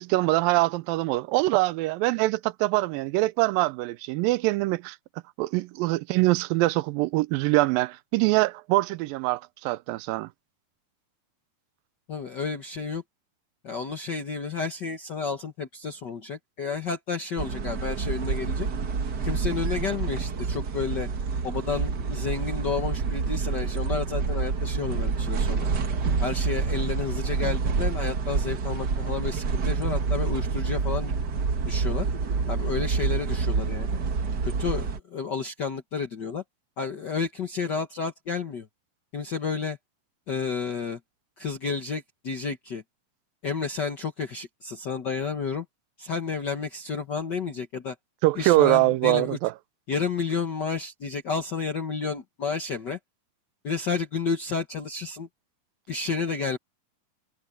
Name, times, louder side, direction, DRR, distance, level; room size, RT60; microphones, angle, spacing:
voice 1, 0.0-5.0 5.4-10.3 48.2-49.5, right 19 dB, 90° right, 2.4 m, -24 dB
voice 2, 12.1-13.0 13.6-18.7 19.2-21.1 21.4-25.7 26.2-31.1 31.7-32.1 32.5-33.9 34.4-36.4 36.8-38.7 39.1-39.8 40.3-41.0 41.4-42.8 43.4-45.6 46.0-47.9 48.3-49.4 49.9-53.0 53.6-55.3 55.9-56.6, left 5 dB, 85° left, 0.9 m, -31 dB
sound 1, 17.4-35.0, right 5 dB, 55° right, 1.2 m, -27 dB
omnidirectional pair, 4.0 m